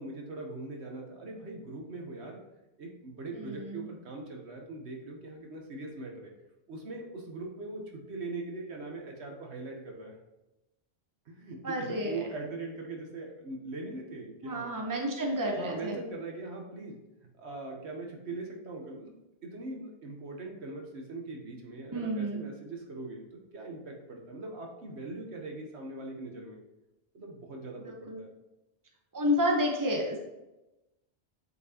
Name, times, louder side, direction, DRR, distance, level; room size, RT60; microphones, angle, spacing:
voice 1, 0.0-2.4 2.8-6.3 6.7-10.1 11.3-14.7 15.5-17.0 17.4-19.1 19.4-26.6 27.1-28.3, right 2 dB, 75° right, 1 dB, 1.3 m, -41 dB
voice 2, 3.4-3.9 11.6-12.2 14.4-15.9 21.9-22.4 28.1-28.2 29.1-30.2, equal, 20° right, 0 dB, 1.0 m, -30 dB
8.3 x 4.5 x 2.9 m, 0.99 s
omnidirectional pair, 1.1 m